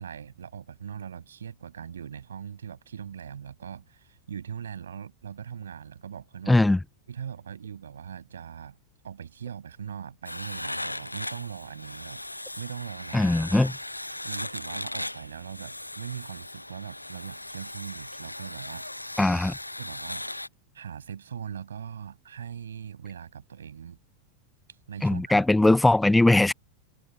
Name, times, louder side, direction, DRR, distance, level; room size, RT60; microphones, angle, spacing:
voice 1, 0.0-6.6 7.1-8.8 9.0-12.2 12.6-13.8 14.1-19.2 19.8-20.3 20.7-24.0 24.9-25.4, right 8 dB, 65° right, 7.8 m, -40 dB
voice 2, 6.5-6.8 13.1-13.7 19.2-19.6 25.0-26.5, left 2 dB, 5° left, 0.3 m, -20 dB
sound 1, 10.3-20.5, left 1 dB, 85° left, 1.2 m, -38 dB
figure-of-eight pair, 90°, 0 cm